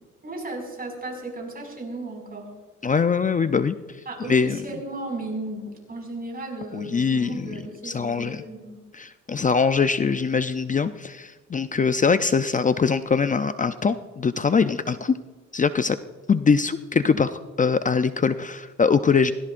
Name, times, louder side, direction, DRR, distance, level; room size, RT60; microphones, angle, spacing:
voice 1, 0.2-2.5 4.1-8.8, right 2 dB, 30° right, 1 dB, 5.6 m, -35 dB
voice 2, 2.8-3.8 4.3-4.6 6.7-7.6 7.8-8.4 8.9-15.2 15.5-16.0 16.3-19.3, left 5 dB, 25° left, 11 dB, 0.5 m, -22 dB
23.5 x 17.0 x 2.5 m, 1.3 s
cardioid pair, 90°, 30 cm